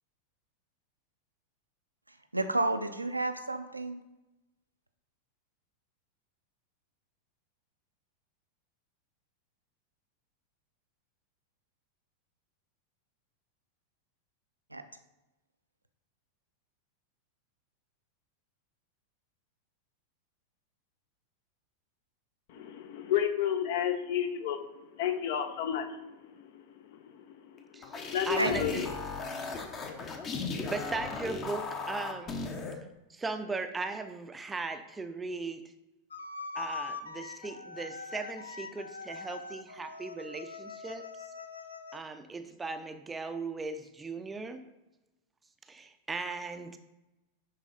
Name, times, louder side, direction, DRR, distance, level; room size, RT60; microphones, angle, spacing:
voice 1, 2.3-4.0 14.7-14.8 28.4-28.8, right 2 dB, 85° right, 9 dB, 0.6 m, -31 dB
voice 2, 22.5-24.6 25.0-26.0 27.0-28.7, left 9 dB, 50° left, 8 dB, 0.9 m, -31 dB
sound 1, 27.6-32.8, left 4 dB, 30° left, 1.0 m, -37 dB
voice 3, 28.2-28.8 29.6-29.7 30.7-32.4 33.1-35.6 36.5-41.0 41.9-44.6 45.7-46.8, right 3 dB, 15° right, 8 dB, 0.6 m, -38 dB
sound 2, 36.1-42.0, left 4 dB, 70° left, 0.5 m, -42 dB
10.5 x 4.0 x 4.0 m, 0.99 s
figure-of-eight pair, 90°, 0 cm